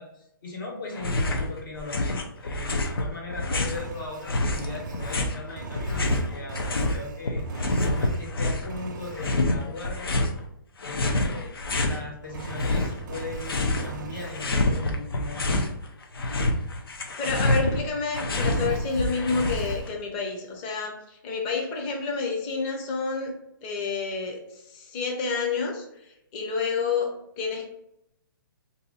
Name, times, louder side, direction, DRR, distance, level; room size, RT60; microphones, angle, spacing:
voice 1, 0.0-7.4 7.8-10.2 10.8-15.7, left 3 dB, 70° left, -2 dB, 1.5 m, -39 dB
sound 1, 0.9-1.5 1.7-3.8 4.3-7.0 7.2-8.7 9.2-10.3 10.8-12.0 12.4-13.9 14.2-15.7 16.0-19.9, left 2 dB, 90° left, 0.6 m, -27 dB
Engine, 3.6-8.3 8.7-9.4 12.2-14.5 18.3-19.9, right 3 dB, 55° right, 0.5 m, -39 dB
voice 2, 17.2-23.3 23.6-27.7, left 4 dB, 25° left, 1 dB, 0.6 m, -29 dB
2.7 x 2.7 x 4.0 m, 0.81 s
hypercardioid pair, 155°, 12 cm